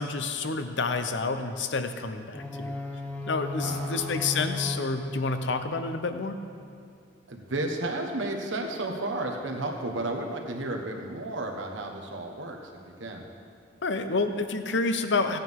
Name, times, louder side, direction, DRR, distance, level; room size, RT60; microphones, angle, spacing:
voice 1, 0.0-2.8 3.3-6.4 13.8-15.4, left 3 dB, 65° left, 8 dB, 0.7 m, -29 dB
sound 1, 2.3-6.3, left 2 dB, 10° left, 1.0 m, -36 dB
voice 2, 3.6-4.3 7.3-12.7 13.0-13.3, right 2 dB, 80° right, 2 dB, 1.4 m, -33 dB
16.5 x 8.8 x 3.7 m, 2.3 s
head